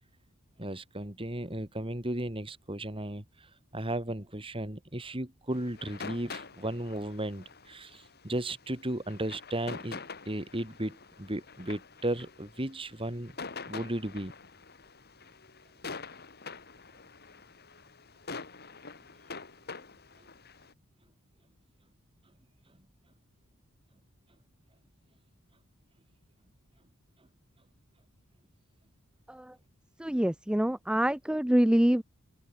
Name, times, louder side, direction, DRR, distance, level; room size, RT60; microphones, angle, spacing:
voice 1, 0.6-3.5 3.7-13.3 13.7-14.3, right 1 dB, 25° right, 2.8 m, -35 dB
sound 1, 5.5-20.7, left 4 dB, 45° left, 3.1 m, -46 dB
voice 2, 30.0-32.0, right 1 dB, 5° right, 0.4 m, -25 dB
open air
head